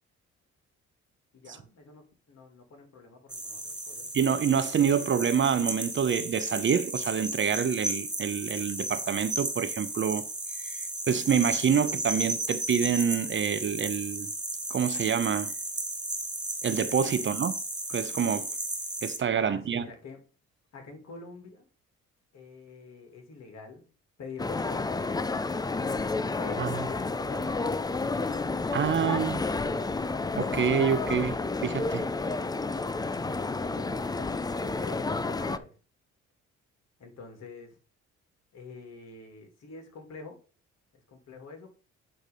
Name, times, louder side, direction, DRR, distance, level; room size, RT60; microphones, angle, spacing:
voice 1, 1.3-4.1 17.2-17.3 19.4-20.2 20.7-21.7 22.3-23.9 24.2-25.1 26.4-27.5 31.9-35.8 37.0-37.8 38.5-40.4 41.1-41.7, left 4 dB, 60° left, 2.6 m, -46 dB
sound 1, 3.3-19.2, right 2 dB, 15° right, 1.8 m, -34 dB
voice 2, 4.1-10.2 10.6-10.8 11.1-14.3 14.7-15.5 16.6-17.6 17.9-18.5 19.0-19.8 26.6-26.7 28.7-29.4 30.4-32.1, right 7 dB, 40° right, 0.6 m, -27 dB
sound 2, 24.4-35.6, left 3 dB, 15° left, 0.4 m, -30 dB
9.0 x 3.3 x 5.2 m
cardioid pair, 90°, 30 cm